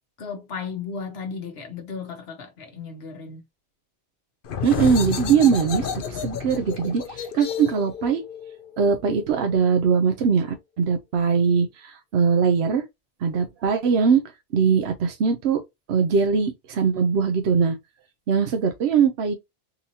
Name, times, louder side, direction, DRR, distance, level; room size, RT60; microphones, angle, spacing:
voice 1, 0.2-3.4, left 5 dB, 75° left, 1.2 m, -35 dB
sound 1, 4.4-9.8, left 7 dB, 60° left, 0.8 m, -31 dB
voice 2, 4.6-8.2 8.8-12.8 13.2-14.2 14.5-15.6 15.9-17.8 18.3-19.4, right 6 dB, 85° right, 0.9 m, -21 dB
4.1 x 2.8 x 2.7 m
omnidirectional pair, 1.1 m